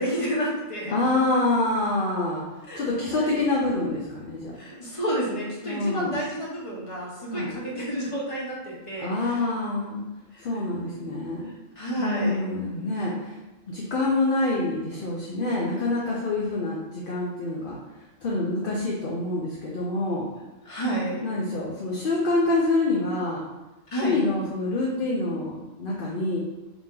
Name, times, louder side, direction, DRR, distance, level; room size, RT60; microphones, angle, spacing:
voice 1, 0.0-0.9 2.7-3.4 4.6-9.4 11.8-12.4 13.0-13.1 20.7-21.2 23.9-24.2, right 1 dB, 25° left, -5 dB, 1.1 m, -30 dB
voice 2, 0.9-2.4 2.7-4.5 5.6-6.2 7.3-7.5 9.0-10.0 10.4-11.5 12.0-13.4 13.7-17.8 18.2-20.3 21.2-23.4 24.0-26.4, left 2 dB, 50° left, -4 dB, 0.7 m, -26 dB
4.0 x 3.0 x 3.7 m, 1.1 s
omnidirectional pair, 1.4 m